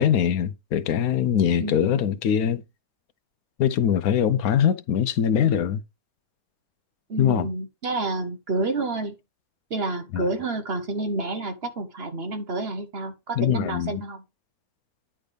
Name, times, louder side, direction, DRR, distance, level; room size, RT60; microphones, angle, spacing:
voice 1, 0.0-2.6 3.6-5.8 7.2-7.5 10.1-10.2 13.4-13.9, left 9 dB, 75° left, 1.1 m, -22 dB
voice 2, 1.6-2.0 7.1-9.1 9.7-14.2, right 2 dB, 45° right, 1.2 m, -29 dB
10.0 x 3.6 x 5.1 m
omnidirectional pair, 1.6 m